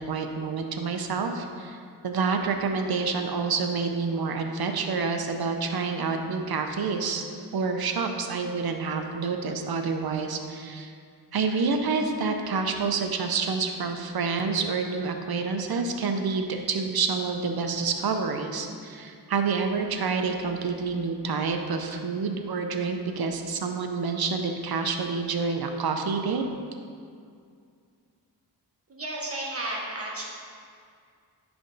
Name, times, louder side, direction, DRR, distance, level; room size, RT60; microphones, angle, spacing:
voice 1, 0.1-1.8 2.0-7.2 7.5-10.9 11.3-26.4, right 4 dB, 60° right, 5 dB, 0.7 m, -28 dB
voice 2, 28.9-30.2, right 1 dB, 35° right, -3 dB, 1.4 m, -33 dB
10.5 x 3.5 x 4.0 m, 2.2 s
cardioid pair, 75°, 42 cm